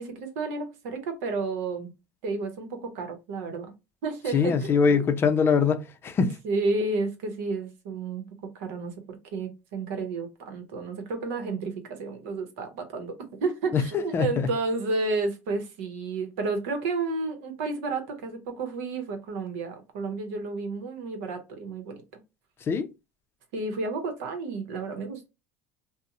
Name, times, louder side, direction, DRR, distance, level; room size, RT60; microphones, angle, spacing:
voice 1, 0.0-1.9 2.2-3.7 4.0-5.1 6.2-8.2 8.5-22.0 23.5-25.3, right 3 dB, 90° right, 0.7 m, -31 dB
voice 2, 4.3-6.3 13.7-13.8 14.1-14.5 22.6-22.9, left 5 dB, 35° left, 0.4 m, -23 dB
2.7 x 2.0 x 2.4 m
supercardioid pair, 110°, 7 cm